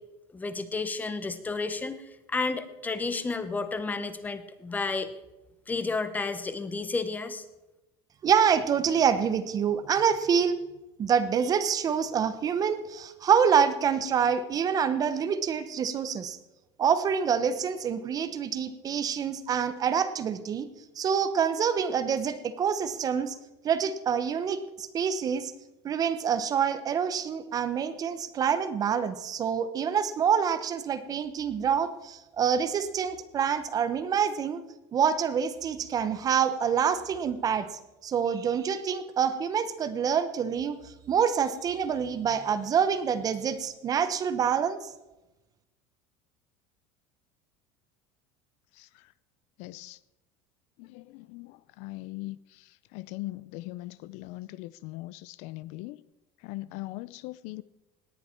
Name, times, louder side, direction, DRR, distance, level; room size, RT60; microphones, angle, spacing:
voice 1, 0.3-5.1 5.7-7.4, left 3 dB, 15° left, 0.9 m, -31 dB
voice 2, 8.2-10.6 11.0-16.4 16.8-20.7 21.0-23.4 23.6-25.5 25.8-34.6 34.9-40.8 41.1-44.9, right 7 dB, 30° right, 0.9 m, -26 dB
voice 3, 49.6-50.0 50.8-56.0 56.4-57.6, left 18 dB, 60° left, 0.5 m, -40 dB
18.0 x 9.9 x 4.5 m
cardioid pair, 150°, 13 cm